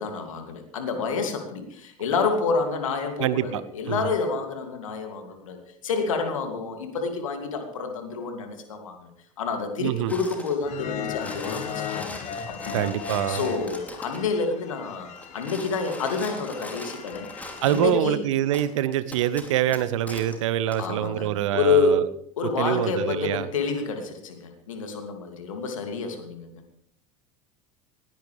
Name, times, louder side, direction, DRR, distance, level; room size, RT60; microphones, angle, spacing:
voice 1, 0.0-5.6 5.8-9.1 9.4-12.1 12.5-12.9 13.3-18.2 20.8-22.0 22.4-26.6, left 4 dB, 70° left, 5 dB, 2.6 m, -28 dB
voice 2, 3.2-3.6 3.9-4.1 9.8-10.1 12.7-13.5 17.6-22.0 22.6-23.5, right 11 dB, 65° right, 16 dB, 0.8 m, -25 dB
sound 1, 10.1-10.6 11.0-14.3 15.1-18.0 18.5-18.7 19.1-20.4 20.7-20.8, left 1 dB, 10° left, 3.1 m, -41 dB
sound 2, 10.6-18.0, left 7 dB, 40° left, 1.5 m, -37 dB
20.0 x 16.5 x 3.4 m, 0.72 s
figure-of-eight pair, 70°, 17 cm